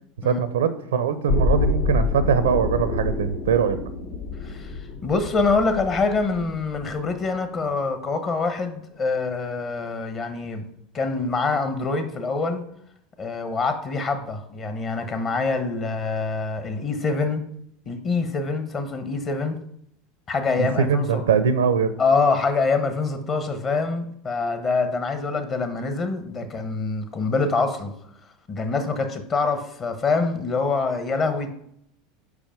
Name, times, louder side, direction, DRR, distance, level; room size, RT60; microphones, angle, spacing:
voice 1, 0.2-3.8 20.6-21.9, right 6 dB, 80° right, 12 dB, 0.6 m, -22 dB
sound 1, 1.3-7.2 7.6-7.7, left 3 dB, 70° left, 1.1 m, -27 dB
voice 2, 4.4-10.6 10.9-12.6 13.2-17.5 17.9-19.6 20.3-21.2 22.0-27.9 28.5-31.5, left 4 dB, 35° left, 7 dB, 1.1 m, -25 dB
5.1 x 4.9 x 5.1 m, 0.71 s
hypercardioid pair, 85°, 0 cm